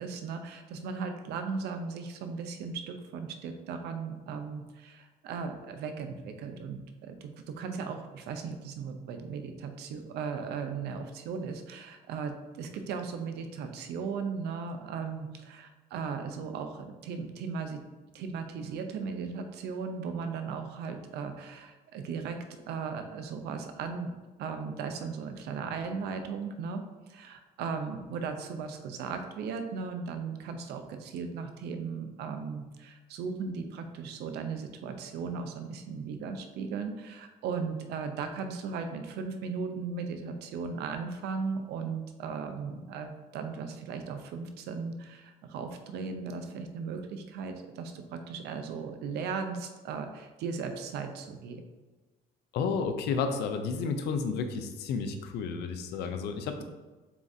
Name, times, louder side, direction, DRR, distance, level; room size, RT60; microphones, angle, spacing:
voice 1, 0.0-17.8 18.1-22.4 22.7-24.1 24.4-26.8 27.1-51.6, right 5 dB, 75° right, 6 dB, 0.6 m, -37 dB
voice 2, 52.5-56.6, left 5 dB, 80° left, 7 dB, 0.5 m, -31 dB
7.0 x 2.4 x 2.6 m, 1.2 s
cardioid pair, 110°, 17 cm